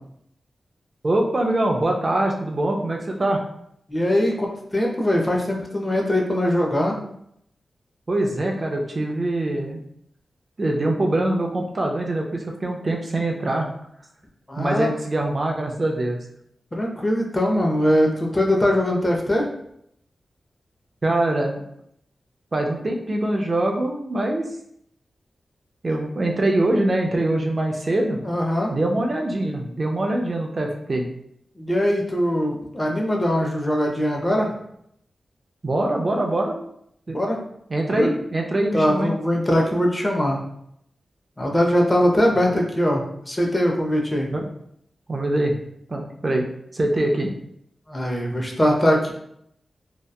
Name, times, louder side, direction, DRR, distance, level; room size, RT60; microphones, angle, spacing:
voice 1, 1.0-3.4 8.1-9.8 10.6-13.7 14.6-16.2 21.0-21.6 22.5-24.5 25.8-28.2 28.7-31.1 35.6-36.5 37.1-37.2 37.7-39.1 42.5-42.6 44.3-44.5 45.1-45.5 45.9-46.4 46.7-47.3, right 1 dB, 40° right, 1 dB, 0.4 m, -23 dB
voice 2, 3.9-7.0 14.5-14.9 16.7-19.5 28.2-28.7 31.6-34.5 37.1-37.4 37.9-38.1 38.7-40.4 41.4-44.3 47.9-49.1, equal, 20° left, 0 dB, 0.5 m, -21 dB
2.7 x 2.1 x 2.2 m, 0.73 s
wide cardioid pair, 75°, 0 cm